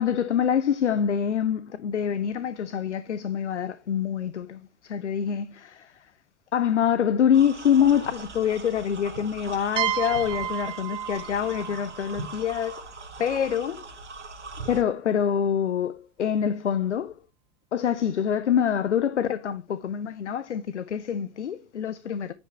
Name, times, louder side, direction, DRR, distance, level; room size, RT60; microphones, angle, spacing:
voice 1, 0.0-6.1 6.5-12.8 13.2-13.9 14.7-17.2 17.7-22.3, left 8 dB, 80° left, 0.5 m, -25 dB
sound 1, 7.3-14.8, right 4 dB, 85° right, 1.1 m, -40 dB
sound 2, 9.8-13.4, right 11 dB, 15° right, 0.3 m, -33 dB
9.7 x 5.2 x 3.3 m
figure-of-eight pair, 85°, 35 cm